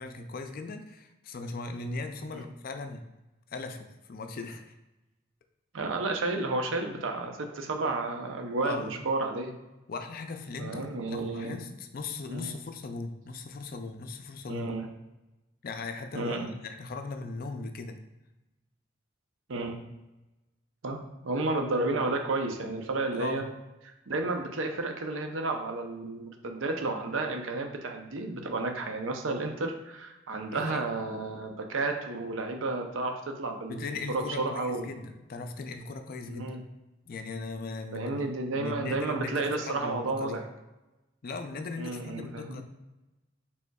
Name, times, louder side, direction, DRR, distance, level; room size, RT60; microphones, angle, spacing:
voice 1, 0.0-3.0 3.5-4.7 8.6-8.9 9.9-14.7 15.6-18.0 23.1-23.4 30.5-30.9 33.7-36.5 37.1-38.1 38.5-40.4 41.2-42.6, left 3 dB, 50° left, 7 dB, 0.4 m, -38 dB
voice 2, 5.7-9.5 10.6-11.6 12.3-12.5 14.5-14.9 16.1-16.6 19.5-19.8 20.8-23.4 23.8-34.9 36.3-36.6 37.9-40.5 41.8-42.6, right 3 dB, 90° right, 4 dB, 0.6 m, -32 dB
5.2 x 3.4 x 2.3 m, 1.0 s
head